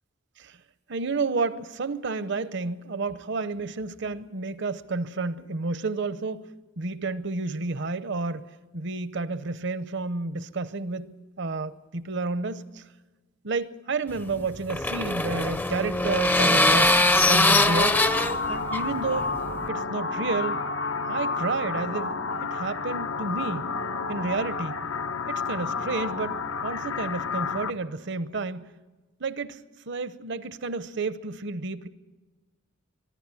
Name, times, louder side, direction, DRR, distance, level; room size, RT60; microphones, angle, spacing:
voice 1, 0.9-6.5 6.8-12.8 13.4-18.0 18.5-19.3 19.7-20.6 21.0-23.7 24.1-24.8 25.3-28.7 29.2-31.9, right 3 dB, 65° right, 0.8 m, -31 dB
sound 1, 14.2-19.7, left 2 dB, 10° left, 0.5 m, -22 dB
sound 2, 17.6-27.7, left 4 dB, 90° left, 0.9 m, -31 dB
23.5 x 11.5 x 9.8 m
head